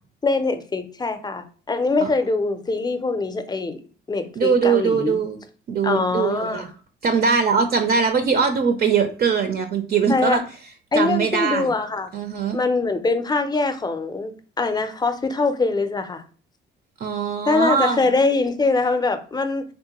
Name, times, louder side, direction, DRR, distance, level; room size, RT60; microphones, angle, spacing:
voice 1, 0.2-5.2 5.8-6.7 10.1-10.4 10.9-12.1 12.5-14.3 14.6-16.2 17.5-19.6, left 3 dB, 20° left, 8 dB, 0.5 m, -23 dB
voice 2, 4.4-5.4 5.7-6.7 7.0-10.4 10.9-11.7 12.1-12.6 17.0-18.1, right 6 dB, 50° right, 7 dB, 0.5 m, -21 dB
3.5 x 2.1 x 2.9 m, 0.40 s
cardioid pair, 90°, 20 cm